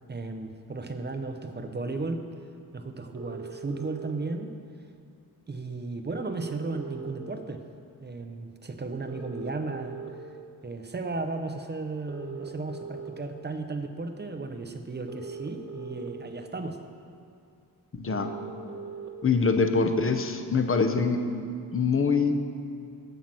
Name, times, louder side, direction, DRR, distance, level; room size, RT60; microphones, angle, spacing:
voice 1, 0.1-2.3 2.7-4.6 5.5-7.7 8.0-10.0 10.6-16.8, right 3 dB, 25° right, 7 dB, 0.7 m, -35 dB
sound 1, 3.1-4.1 6.1-7.1 9.1-10.1 12.1-13.1 15.1-16.1 18.1-19.1, right 5 dB, 45° right, 1.3 m, -40 dB
voice 2, 17.9-18.3 19.2-21.2 21.7-22.3, left 4 dB, 35° left, 7 dB, 0.8 m, -24 dB
15.0 x 5.8 x 7.5 m, 2.3 s
wide cardioid pair, 165°, 39 cm